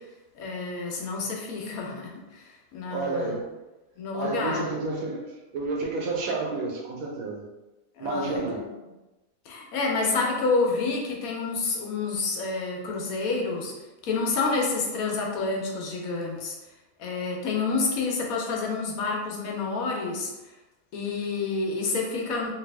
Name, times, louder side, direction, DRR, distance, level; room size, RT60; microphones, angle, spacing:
voice 1, 0.3-3.4 4.0-4.6 8.0-8.7 9.4-13.7 14.0-16.5 17.0-20.3 20.9-22.5, left 3 dB, 85° left, -1 dB, 1.2 m, -28 dB
voice 2, 2.9-3.5 4.1-7.5 8.0-8.6, right 3 dB, 85° right, -1 dB, 1.2 m, -30 dB
3.3 x 2.8 x 3.3 m, 1.1 s
omnidirectional pair, 1.4 m